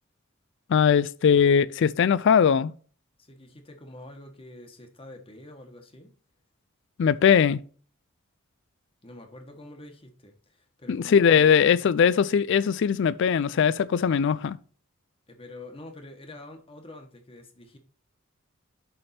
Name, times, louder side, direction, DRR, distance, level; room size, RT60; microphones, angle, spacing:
voice 1, 0.7-2.7 7.0-7.6 10.9-14.6, left 7 dB, 60° left, 0.3 m, -20 dB
voice 2, 3.2-6.1 9.0-12.0 15.3-17.8, left 1 dB, 25° left, 1.2 m, -46 dB
6.8 x 3.5 x 5.7 m
head